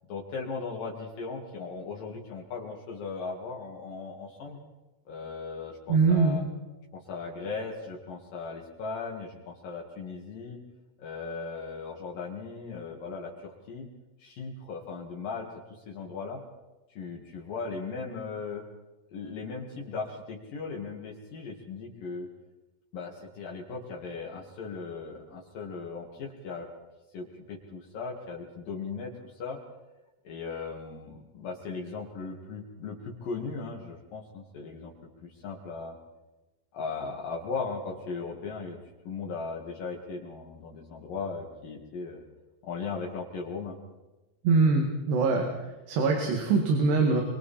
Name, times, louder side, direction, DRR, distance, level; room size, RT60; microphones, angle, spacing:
voice 1, 0.1-4.6 5.1-6.4 6.9-10.6 11.0-13.9 14.2-16.4 16.9-18.6 19.1-22.3 22.9-26.7 27.1-29.6 30.3-34.9 35.2-36.0 36.7-38.8 39.1-42.2 42.6-43.8, left 4 dB, 60° left, -1 dB, 3.5 m, -37 dB
voice 2, 5.9-6.4 44.4-45.5 45.9-47.2, right 4 dB, 80° right, 2 dB, 4.3 m, -23 dB
26.5 x 24.5 x 4.3 m, 1.1 s
omnidirectional pair, 4.8 m